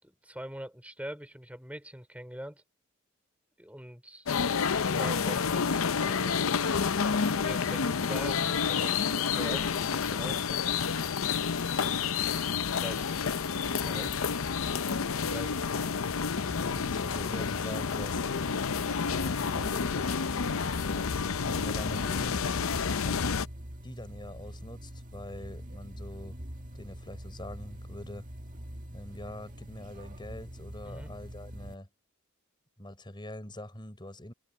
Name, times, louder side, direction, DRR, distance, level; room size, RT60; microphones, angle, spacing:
voice 1, 0.0-2.6 3.6-4.3 4.8-6.4 7.4-10.9 12.7-13.1 13.8-14.1 15.2-15.6 25.4-25.5 30.8-31.2, equal, 5° right, 4.2 m, -43 dB
sound 1, 4.3-23.5, left 6 dB, 70° left, 0.6 m, -29 dB
sound 2, 13.5-31.7, equal, 40° right, 1.9 m, -45 dB
voice 2, 13.9-14.3 16.4-18.2 19.1-20.6 21.4-22.4 23.8-26.4 26.7-28.3 28.9-31.9 32.8-34.3, left 1 dB, 20° left, 5.7 m, -43 dB
open air
head